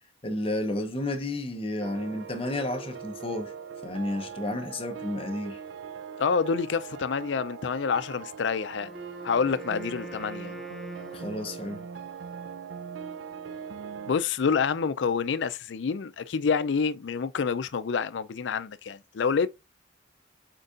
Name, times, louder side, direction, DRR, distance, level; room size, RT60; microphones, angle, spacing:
voice 1, 0.2-3.5 3.8-5.6 11.1-11.8, left 1 dB, 30° left, 0.8 m, -31 dB
sound 1, 1.8-14.2, right 6 dB, 75° right, 0.4 m, -41 dB
voice 2, 6.2-8.9 9.2-10.6 14.1-19.5, left 5 dB, 70° left, 0.4 m, -27 dB
Wind instrument woodwind instrument, 8.7-12.0, right 1 dB, ahead, 0.4 m, -45 dB
4.5 x 4.0 x 2.5 m
head